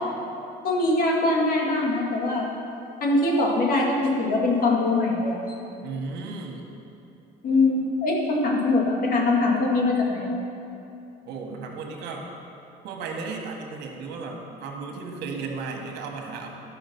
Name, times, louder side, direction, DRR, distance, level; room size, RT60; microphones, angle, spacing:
voice 1, 0.6-2.5 3.0-5.4 7.4-10.4, left 2 dB, 60° left, -2 dB, 2.1 m, -22 dB
voice 2, 5.8-6.7 11.2-12.3 12.8-16.6, right 4 dB, 85° right, 2 dB, 1.5 m, -34 dB
12.5 x 5.7 x 6.1 m, 2.7 s
cardioid pair, 110°, 17 cm